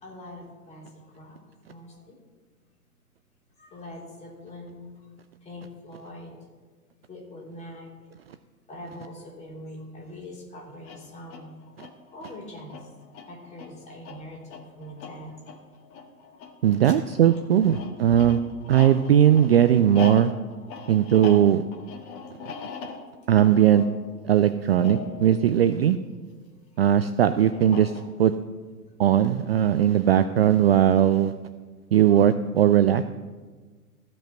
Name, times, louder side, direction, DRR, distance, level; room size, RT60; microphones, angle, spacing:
voice 1, 0.0-1.4 1.7-2.2 3.6-5.0 5.4-6.4 7.1-7.9 8.7-11.5 12.1-12.9 13.3-15.4 16.8-17.0 26.7-26.8 32.1-32.2, left 1 dB, 15° left, -4 dB, 3.4 m, -43 dB
sound 1, 10.7-26.5 27.5-28.4, left 5 dB, 30° left, 1.7 m, -41 dB
voice 2, 16.6-18.4 18.7-20.3 20.9-21.6 23.3-23.8 24.2-26.0 26.8-27.9 28.2-28.3 29.0-31.3 31.9-33.0, right 10 dB, 45° right, 11 dB, 0.4 m, -19 dB
15.0 x 5.4 x 7.8 m, 1.4 s
figure-of-eight pair, 105°, 46 cm